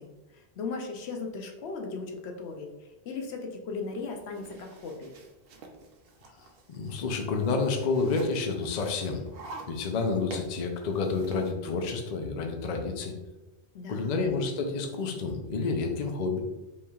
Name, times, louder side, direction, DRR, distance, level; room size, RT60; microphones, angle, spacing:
voice 1, 0.0-5.1 13.7-14.1, left 4 dB, 75° left, 3 dB, 0.9 m, -37 dB
sound 1, 3.8-11.5, right 3 dB, 65° right, 0.8 m, -48 dB
voice 2, 6.7-9.2 9.7-13.1 13.9-16.4, left 4 dB, 50° left, 3 dB, 0.6 m, -29 dB
5.3 x 3.2 x 2.3 m, 1.1 s
omnidirectional pair, 1.1 m